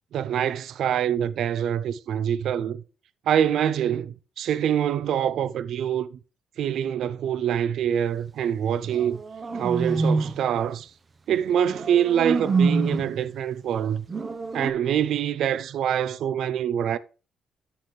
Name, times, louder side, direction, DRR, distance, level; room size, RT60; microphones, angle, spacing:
voice 1, 0.1-2.8 3.3-6.2 6.6-9.2 9.5-10.9 11.3-14.0 14.5-17.0, right 9 dB, 70° right, 0.5 m, -25 dB
sound 1, 8.8-10.4 11.7-13.2 14.1-14.7, right 4 dB, 35° right, 0.8 m, -26 dB
10.0 x 6.7 x 3.2 m
cardioid pair, 90°, 0 cm